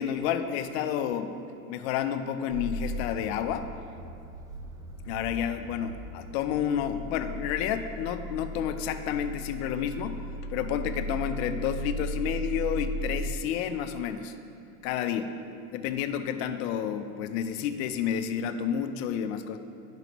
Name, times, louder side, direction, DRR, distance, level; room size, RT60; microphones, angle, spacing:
voice 1, 0.0-1.4 1.7-3.7 5.0-10.2 10.5-14.3 14.8-15.3 15.7-19.6, left 9 dB, 50° left, 9 dB, 0.6 m, -30 dB
London Bus, 2.5-13.4, equal, 10° right, 0.4 m, -37 dB
10.5 x 6.1 x 3.0 m, 2.6 s
hypercardioid pair, 100°, 42 cm